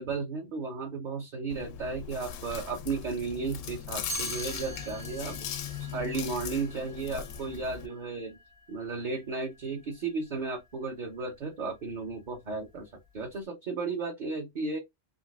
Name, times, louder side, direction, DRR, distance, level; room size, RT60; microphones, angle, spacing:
voice 1, 0.0-8.4 8.7-14.8, right 4 dB, 45° right, 0.8 m, -34 dB
Chewing mastication, 1.5-7.9, left 8 dB, 85° left, 0.9 m, -39 dB
Chime, 4.1-10.0, right 3 dB, 65° right, 1.2 m, -45 dB
3.9 x 2.7 x 2.4 m
omnidirectional pair, 1.3 m